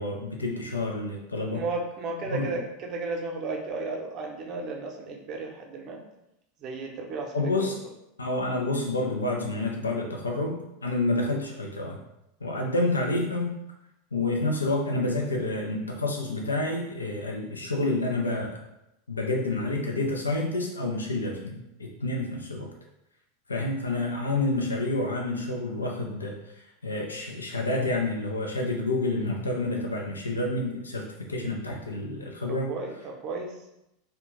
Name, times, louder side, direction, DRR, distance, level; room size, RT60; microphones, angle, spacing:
voice 1, 0.0-1.6 2.3-2.5 7.3-7.8 8.2-12.0 12.4-13.5 14.1-18.6 19.1-22.7 23.5-26.3 26.8-31.0 31.3-32.7, left 2 dB, 85° left, 0 dB, 0.4 m, -28 dB
voice 2, 1.5-6.0 6.6-7.7 32.5-33.5, right 3 dB, 40° right, 1 dB, 0.6 m, -34 dB
2.3 x 2.2 x 3.0 m, 0.86 s
figure-of-eight pair, 90°, 0 cm